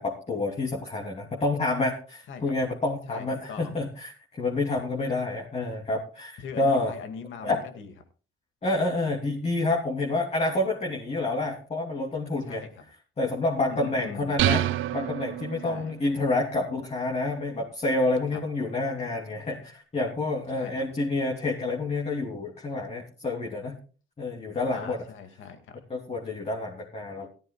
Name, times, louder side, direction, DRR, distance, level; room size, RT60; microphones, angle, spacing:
voice 1, 0.0-4.1 4.4-6.9 7.4-7.6 8.6-12.6 13.2-14.6 14.9-23.8 24.2-25.0 25.9-27.3, left 2 dB, 30° left, -2 dB, 3.1 m, -28 dB
voice 2, 3.1-3.8 6.4-7.9 12.4-12.8 13.7-14.3 15.6-15.9 18.3-18.4 20.5-20.9 24.7-25.8, left 6 dB, 80° left, 7 dB, 2.2 m, -41 dB
sound 1, 14.4-16.0, right 14 dB, 90° right, 0.7 m, -27 dB
17.5 x 14.0 x 2.4 m, 0.37 s
cardioid pair, 90°, 20 cm